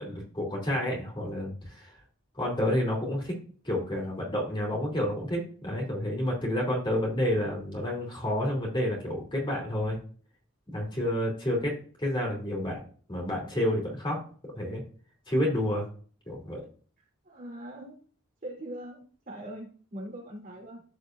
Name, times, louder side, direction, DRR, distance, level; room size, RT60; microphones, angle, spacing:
voice 1, 0.0-1.9 2.3-3.3 3.6-10.0 10.7-11.7 12.0-12.8 13.1-14.2 14.5-14.8 15.3-15.9 16.3-16.6, left 1 dB, 20° left, -2 dB, 3.1 m, -29 dB
voice 2, 17.2-18.0 18.4-20.8, right 1 dB, 40° right, -3 dB, 3.3 m, -41 dB
14.5 x 4.8 x 2.6 m, 0.42 s
head